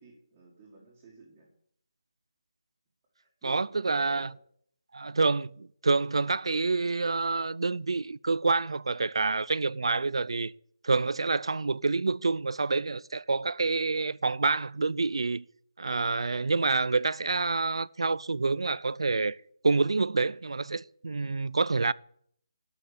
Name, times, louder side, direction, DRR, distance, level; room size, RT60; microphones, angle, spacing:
voice 1, 0.0-1.5 3.2-4.3, right 2 dB, 10° right, 1.9 m, -52 dB
voice 2, 3.4-4.3 4.9-10.5 10.8-15.4 15.8-19.4 19.6-21.9, right 3 dB, 75° right, 0.5 m, -27 dB
12.5 x 5.8 x 8.5 m
hypercardioid pair, 180°, 3 cm